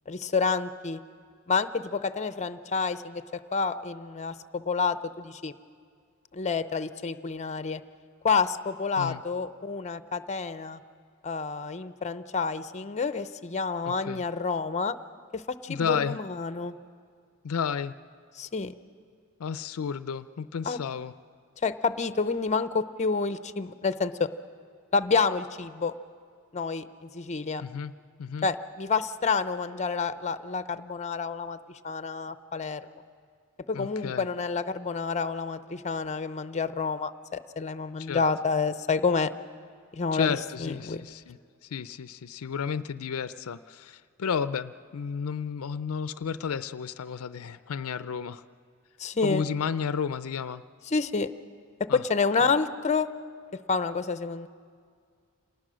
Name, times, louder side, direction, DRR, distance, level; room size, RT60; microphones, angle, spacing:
voice 1, 0.1-1.0 1.5-3.2 3.5-5.5 6.3-7.8 8.2-10.8 11.2-15.0 15.3-16.7 18.4-18.7 20.7-20.8 21.6-24.3 24.9-25.9 26.5-27.6 28.4-31.6 31.8-32.9 33.7-39.3 39.9-41.0 49.0-49.4 50.9-51.3 51.9-53.1 53.7-54.5, left 4 dB, 35° left, 12 dB, 0.6 m, -29 dB
voice 2, 13.9-14.2 15.7-16.2 17.4-17.9 19.4-21.1 27.6-27.9 28.2-28.5 33.7-34.3 38.0-38.2 40.1-48.4 49.2-50.6 51.9-52.0, left 6 dB, 80° left, 14 dB, 0.5 m, -32 dB
27.5 x 19.5 x 6.3 m, 2.1 s
head